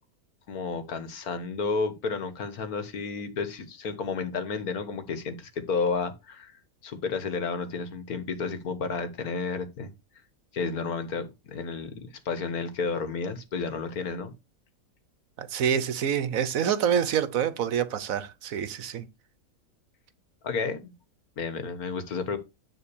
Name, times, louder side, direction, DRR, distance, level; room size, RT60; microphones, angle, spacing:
voice 1, 0.5-9.9 10.5-14.3 20.4-20.9 21.4-22.4, left 4 dB, 85° left, 1.8 m, -31 dB
voice 2, 15.4-19.1, right 8 dB, 70° right, 1.2 m, -27 dB
9.8 x 3.7 x 7.0 m
omnidirectional pair, 1.5 m